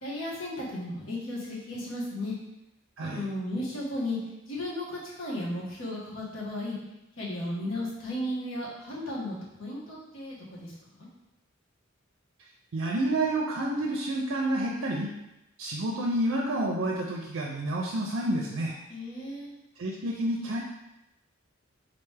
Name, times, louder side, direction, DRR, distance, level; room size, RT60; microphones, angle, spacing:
voice 1, 0.0-2.3 3.0-4.2 4.5-6.8 7.2-11.1 18.9-19.5, left 1 dB, 85° left, -5 dB, 1.3 m, -35 dB
voice 2, 3.0-3.3 12.7-15.1 15.6-18.8 19.8-20.6, right 1 dB, 70° right, -2 dB, 0.5 m, -29 dB
3.9 x 3.3 x 3.3 m, 0.92 s
head